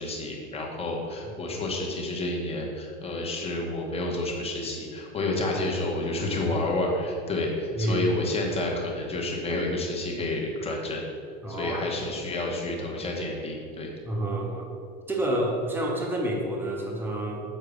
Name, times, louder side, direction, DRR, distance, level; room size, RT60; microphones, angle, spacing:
voice 1, 0.0-11.0 11.5-13.9, left 2 dB, 20° left, -1 dB, 1.2 m, -29 dB
voice 2, 7.7-8.1 11.4-12.1 14.0-14.7 15.1-17.4, right 1 dB, 5° right, -1 dB, 1.0 m, -29 dB
6.7 x 4.5 x 6.6 m, 2.3 s
supercardioid pair, 150°, 33 cm